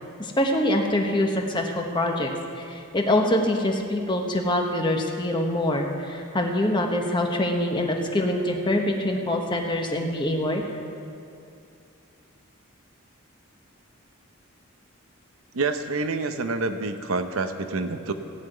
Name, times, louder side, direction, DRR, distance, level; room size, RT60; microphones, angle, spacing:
voice 1, 0.2-2.3 2.6-10.6, left 1 dB, 20° left, 2 dB, 1.2 m, -24 dB
voice 2, 15.5-18.1, right 3 dB, 85° right, 8 dB, 0.8 m, -27 dB
17.0 x 5.8 x 9.1 m, 2.5 s
head